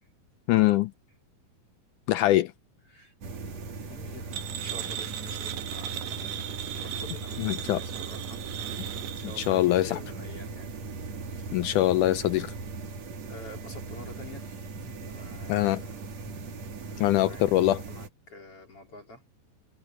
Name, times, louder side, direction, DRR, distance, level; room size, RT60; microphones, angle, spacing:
voice 1, 0.5-0.9 2.1-2.5 7.4-7.8 9.4-10.0 11.5-12.5 15.5-15.8 17.0-17.8, left 15 dB, 80° left, 1.8 m, -23 dB
sound 1, 3.2-18.1, right 4 dB, 50° right, 3.7 m, -39 dB
voice 2, 3.9-8.4 9.2-10.7 11.2-11.5 13.3-16.1 16.9-17.4 17.7-19.2, left 2 dB, 40° left, 4.2 m, -48 dB
sound 2, 4.3-9.5, right 11 dB, 75° right, 2.5 m, -37 dB
omnidirectional pair, 4.1 m